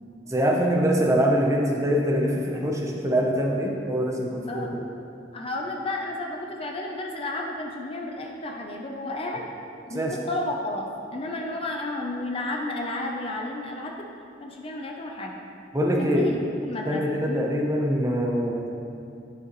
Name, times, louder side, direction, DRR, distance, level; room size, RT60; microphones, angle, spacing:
voice 1, 0.3-4.8 9.9-10.2 15.7-16.3 16.9-18.7, equal, 15° right, -1 dB, 0.7 m, -24 dB
voice 2, 5.3-9.5 9.9-14.1 14.4-15.4 16.0-17.5, left 2 dB, 30° left, 1 dB, 0.5 m, -32 dB
9.8 x 6.6 x 3.0 m, 2.5 s
head